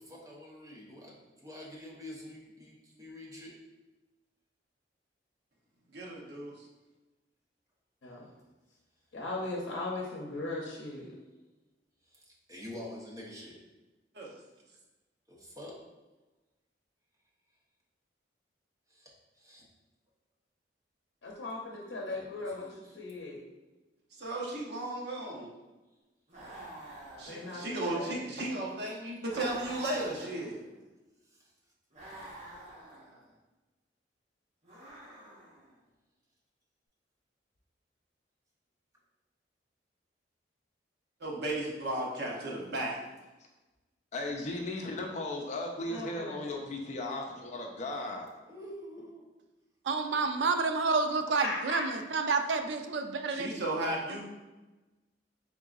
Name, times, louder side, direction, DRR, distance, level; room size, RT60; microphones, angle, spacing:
voice 1, 0.0-3.6 12.0-13.6 15.3-15.8 18.9-19.1 19.4-19.6 22.0-22.9 27.4-27.5 29.7-30.1 31.3-31.5 48.5-49.2, left 1 dB, 20° right, -4 dB, 0.8 m, -47 dB
voice 2, 5.9-6.5 14.1-14.3 24.2-25.5 27.2-30.6 41.2-43.0 53.3-54.2, right 1 dB, 65° right, -2 dB, 0.8 m, -35 dB
voice 3, 9.1-11.1 21.2-22.7 22.9-23.4 27.3-28.2 45.9-46.6 51.4-51.9, left 2 dB, 85° left, -3 dB, 0.6 m, -38 dB
sound 1, 26.3-28.1 29.2-30.8 31.9-33.3 34.6-35.7, right 1 dB, 40° right, 1.0 m, -48 dB
voice 4, 44.1-48.3, left 2 dB, 40° left, 0 dB, 0.5 m, -36 dB
voice 5, 49.8-53.5, right 4 dB, 80° right, 6 dB, 0.4 m, -29 dB
3.9 x 3.6 x 2.4 m, 1.1 s
head